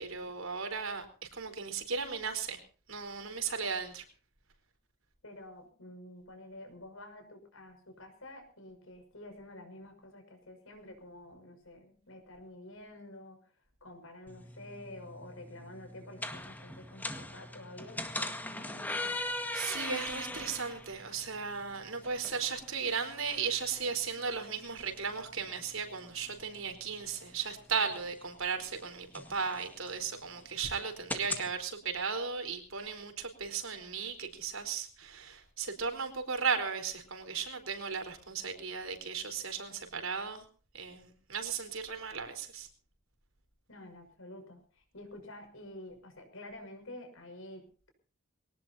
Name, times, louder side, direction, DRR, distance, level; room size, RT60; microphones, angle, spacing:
voice 1, 0.0-2.6 2.9-4.0 19.5-40.4 40.7-42.7, right 5 dB, 80° right, 6 dB, 4.4 m, -36 dB
voice 2, 5.2-13.4 13.8-19.1 43.7-47.9, left 1 dB, 75° left, 4 dB, 6.1 m, -49 dB
bathroomdoorsqueek-walk, 14.3-31.5, left 2 dB, 10° left, 1.8 m, -42 dB
23.5 x 18.5 x 2.8 m, 0.39 s
head